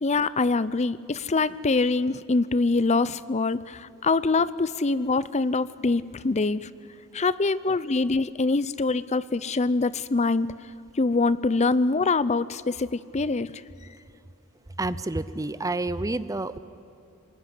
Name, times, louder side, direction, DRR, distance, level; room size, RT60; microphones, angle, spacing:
voice 1, 0.0-6.7 7.1-10.5 10.9-13.5, left 3 dB, 30° left, 17 dB, 0.6 m, -24 dB
voice 2, 14.8-16.6, right 2 dB, 15° right, 15 dB, 0.6 m, -29 dB
25.5 x 20.5 x 10.0 m, 2.6 s
head